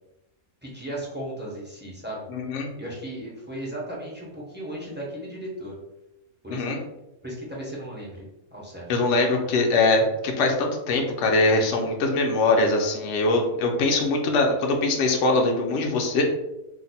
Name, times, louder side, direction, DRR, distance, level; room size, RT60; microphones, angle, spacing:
voice 1, 0.6-2.3 2.8-5.7 6.4-6.8 7.2-8.9, right 1 dB, 15° right, -5 dB, 0.4 m, -36 dB
voice 2, 2.3-2.7 6.5-6.8 8.9-16.2, left 2 dB, 65° left, 1 dB, 0.8 m, -22 dB
2.6 x 2.1 x 4.0 m, 0.94 s
omnidirectional pair, 1.5 m